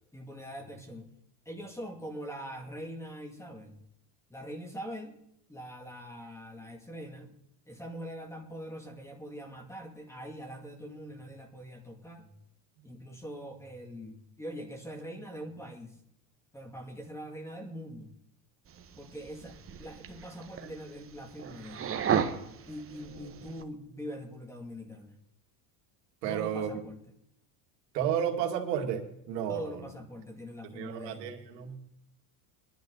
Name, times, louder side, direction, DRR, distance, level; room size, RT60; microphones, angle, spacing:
voice 1, 0.1-1.1 1.5-3.8 4.3-5.2 5.5-7.4 7.7-12.3 12.8-16.0 16.5-18.1 19.0-22.0 22.7-25.2 26.3-27.0 29.5-31.4, equal, 5° left, 4 dB, 2.4 m, -43 dB
sound 1, 18.7-23.6, right 7 dB, 30° right, 1.2 m, -35 dB
voice 2, 26.2-26.8 27.9-29.9 30.6-31.9, right 9 dB, 90° right, 4 dB, 2.2 m, -32 dB
21.5 x 11.5 x 3.9 m, 0.75 s
supercardioid pair, 120°, 48 cm